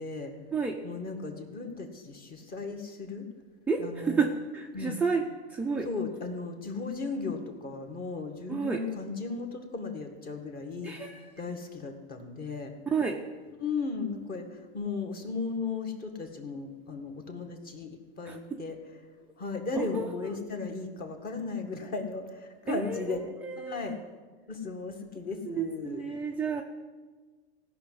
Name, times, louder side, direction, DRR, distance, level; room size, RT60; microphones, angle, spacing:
voice 1, 0.0-0.3 0.8-3.3 3.8-4.3 4.7-5.0 5.8-12.7 13.6-18.8 19.4-23.2 23.6-24.0 24.5-26.0, left 4 dB, 25° left, 4 dB, 1.9 m, -36 dB
voice 2, 3.7-5.2 5.5-5.9 8.5-8.8 10.8-11.2 12.9-13.2 18.3-18.6 19.7-20.4 22.7-23.9 25.5-26.6, right 5 dB, 5° right, 0 dB, 0.6 m, -31 dB
16.0 x 6.2 x 9.5 m, 1.4 s
supercardioid pair, 135°, 33 cm